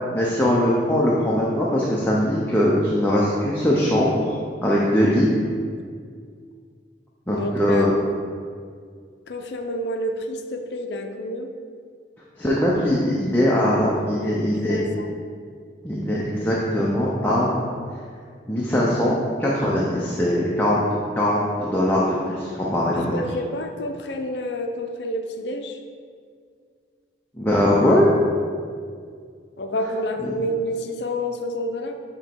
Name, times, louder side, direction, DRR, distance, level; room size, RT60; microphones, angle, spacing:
voice 1, 0.1-5.3 7.3-7.9 12.4-14.8 15.8-17.6 18.5-19.1 19.4-20.8 21.2-23.1 27.4-28.1 30.2-30.3, left 1 dB, 10° left, -6 dB, 0.6 m, -21 dB
voice 2, 7.3-7.9 9.3-11.5 14.1-15.0 23.1-25.8 29.6-32.0, equal, 70° left, 5 dB, 0.5 m, -29 dB
7.4 x 3.0 x 4.5 m, 2.1 s
head